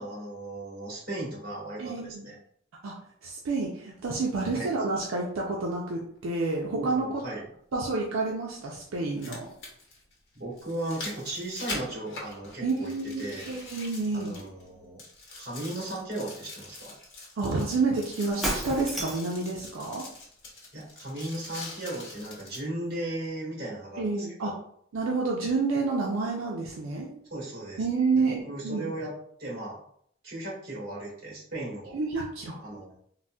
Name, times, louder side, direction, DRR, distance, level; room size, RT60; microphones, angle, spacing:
voice 1, 0.0-2.4 4.5-4.7 6.7-7.5 10.3-12.9 13.2-13.5 14.1-15.0 15.4-16.9 20.7-24.1 24.4-24.6 27.3-27.8 28.1-29.1 29.4-29.8 30.2-32.0 32.6-33.0, right 1 dB, 50° right, -5 dB, 1.5 m, -36 dB
voice 2, 1.8-2.3 2.8-2.9 3.2-7.2 7.7-9.5 12.6-14.4 17.4-20.0 24.0-24.5 24.9-27.1 27.8-28.9 31.9-32.6, right 3 dB, 85° right, -2 dB, 0.5 m, -29 dB
sound 1, 5.7-5.8 7.7-7.8 9.0-14.7 15.0-22.7 23.2-23.3, left 2 dB, 60° left, 0.9 m, -43 dB
Shatter, 18.4-19.4, equal, ahead, 0.4 m, -31 dB
3.9 x 2.1 x 2.2 m, 0.66 s
head